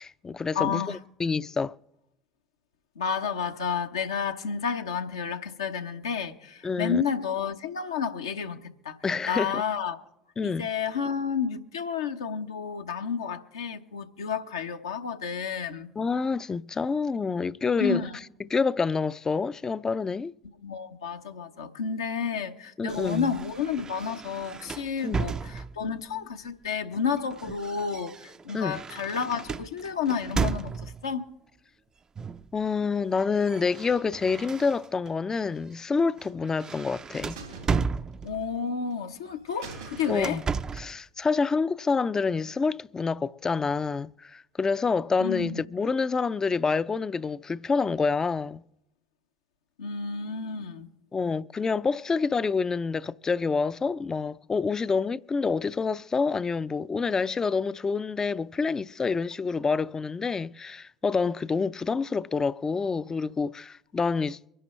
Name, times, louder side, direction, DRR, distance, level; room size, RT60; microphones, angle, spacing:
voice 1, 0.0-1.8 6.6-7.0 9.0-9.6 10.4-10.7 16.0-18.0 18.4-20.3 22.8-23.3 25.0-25.3 28.5-28.8 32.5-37.4 40.1-40.5 40.7-48.6 51.1-64.5, left 4 dB, 25° left, 0.4 m, -27 dB
voice 2, 0.5-1.0 3.0-9.0 9.3-10.0 10.4-15.9 17.8-18.1 20.6-31.3 38.2-40.4 45.2-45.6 49.8-50.9, left 6 dB, 80° left, 0.9 m, -31 dB
sound 1, 22.9-26.0 26.9-31.1 32.2-32.5 32.8-35.1 35.6-35.8 36.2-38.6 39.5-41.0, right 5 dB, 30° right, 0.5 m, -34 dB
sound 2, 36.2-36.9 37.3-38.6 38.9-39.0 39.3-39.4 39.6-40.5 40.9-41.0, right 4 dB, 85° right, 3.4 m, -45 dB
24.5 x 11.0 x 3.1 m
figure-of-eight pair, 65°, 2 cm